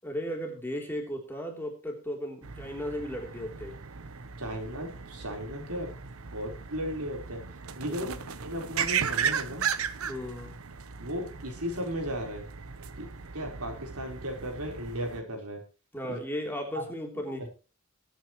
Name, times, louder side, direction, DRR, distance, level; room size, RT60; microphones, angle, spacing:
voice 1, 0.0-3.8 7.9-8.2 10.1-10.6 15.9-17.5, equal, 10° left, 1 dB, 3.3 m, -36 dB
sound 1, 2.4-15.2, right 7 dB, 70° right, 0.9 m, -36 dB
voice 2, 4.4-5.9 6.3-7.4 7.8-8.2 8.4-9.6 11.0-12.4 13.0-13.1 13.3-15.6 16.1-16.2 16.7-16.8, equal, 90° right, 2 dB, 4.2 m, -35 dB
20.0 x 9.3 x 3.1 m, 0.33 s
head